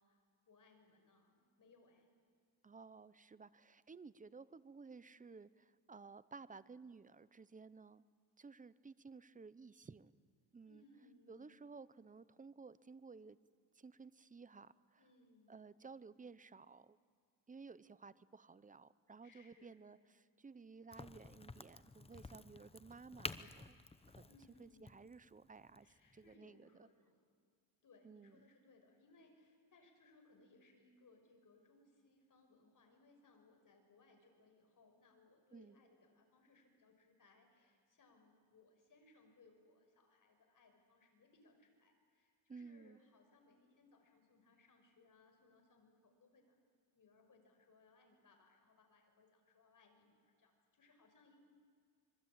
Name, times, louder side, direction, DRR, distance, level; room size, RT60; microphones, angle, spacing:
voice 1, 0.0-2.1 10.6-11.7 15.0-15.8 19.2-19.8 24.3-25.0 25.8-27.3 27.8-46.6 46.9-51.4, left 3 dB, 40° left, 4 dB, 6.1 m, -68 dB
voice 2, 2.6-8.0 8.4-10.1 10.5-10.8 11.3-13.4 13.7-15.0 15.5-17.0 17.5-23.8 24.1-24.3 24.6-25.9 26.1-26.9 28.0-28.4 35.5-35.8 42.5-43.0, right 4 dB, 15° right, 17 dB, 0.7 m, -56 dB
Crack, 20.9-26.4, left 3 dB, 15° left, 0.8 m, -51 dB
25.5 x 23.0 x 8.9 m, 2.1 s
cardioid pair, 105°, 46 cm